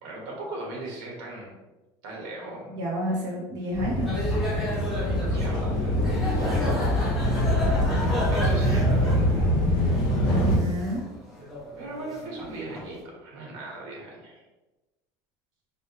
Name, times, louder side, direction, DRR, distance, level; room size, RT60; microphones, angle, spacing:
voice 1, 0.0-1.6 2.0-2.7 5.1-6.8 7.5-9.5 11.8-14.4, right 2 dB, 85° right, -2 dB, 1.3 m, -39 dB
voice 2, 2.7-4.3 10.2-11.0, equal, 45° right, -3 dB, 0.7 m, -30 dB
sound 1, 3.7-10.6, equal, 45° left, 1.1 m, -24 dB
sound 2, 4.1-12.9, equal, ahead, 0.8 m, -33 dB
4.6 x 2.2 x 3.1 m, 1.1 s
cardioid pair, 175°, 10 cm